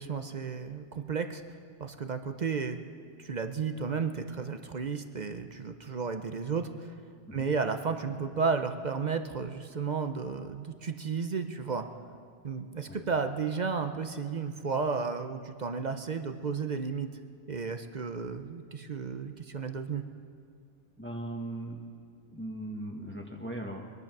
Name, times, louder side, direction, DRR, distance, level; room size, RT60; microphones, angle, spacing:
voice 1, 0.0-1.4 1.8-2.8 3.2-6.9 7.3-11.9 12.4-17.1 17.5-20.0, right 5 dB, 45° right, 7 dB, 0.7 m, -33 dB
voice 2, 21.0-21.8 22.2-23.9, right 1 dB, 10° left, 0 dB, 1.3 m, -39 dB
22.0 x 11.0 x 6.0 m, 2.2 s
omnidirectional pair, 1.2 m